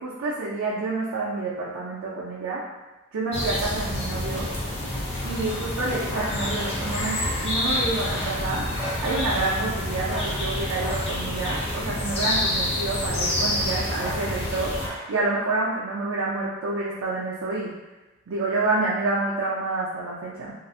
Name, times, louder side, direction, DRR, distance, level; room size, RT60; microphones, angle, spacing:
voice 1, 0.0-2.6 3.1-4.5 5.2-8.6 9.0-17.7 18.3-20.5, right 3 dB, 85° right, -6 dB, 0.4 m, -28 dB
sound 1, 3.3-14.9, left 1 dB, 30° left, 0.4 m, -28 dB
sound 2, 5.1-15.3, equal, 50° left, 0.8 m, -38 dB
2.5 x 2.0 x 2.5 m, 1.1 s
head